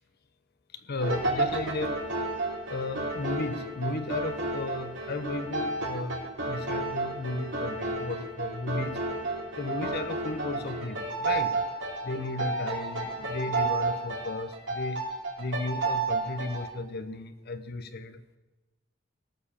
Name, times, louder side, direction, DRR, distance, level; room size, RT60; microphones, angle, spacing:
voice 1, 0.7-2.0 2.7-9.1 9.6-11.7 12.0-15.0 15.4-18.2, left 2 dB, 55° left, 10 dB, 0.8 m, -34 dB
sound 1, 1.0-16.7, right 2 dB, 65° right, 3.4 m, -32 dB
17.5 x 7.0 x 7.2 m, 1.1 s
head